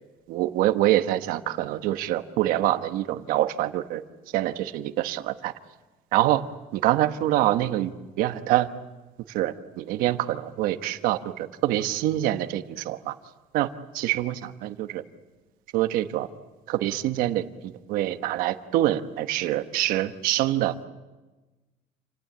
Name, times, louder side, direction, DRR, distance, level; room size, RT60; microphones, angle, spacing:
voice 1, 0.3-4.0 4.3-5.5 6.1-6.5 6.7-7.9 8.2-8.7 9.3-13.1 13.5-13.7 13.9-14.3 14.6-15.0 15.7-16.3 16.7-20.7, right 14 dB, 85° right, 10 dB, 1.2 m, -25 dB
28.5 x 18.5 x 8.6 m, 1.2 s
cardioid pair, 165°, 14 cm